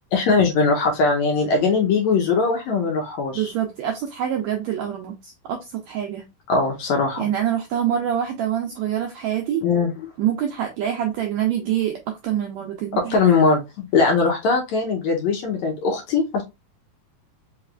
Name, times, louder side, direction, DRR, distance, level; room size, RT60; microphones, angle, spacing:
voice 1, 0.1-3.5 6.5-7.2 9.6-10.1 13.0-16.4, left 4 dB, 70° left, 1.8 m, -20 dB
voice 2, 3.3-6.2 7.2-9.6 10.2-13.2, right 10 dB, 85° right, 1.6 m, -25 dB
5.0 x 3.2 x 2.3 m
omnidirectional pair, 3.9 m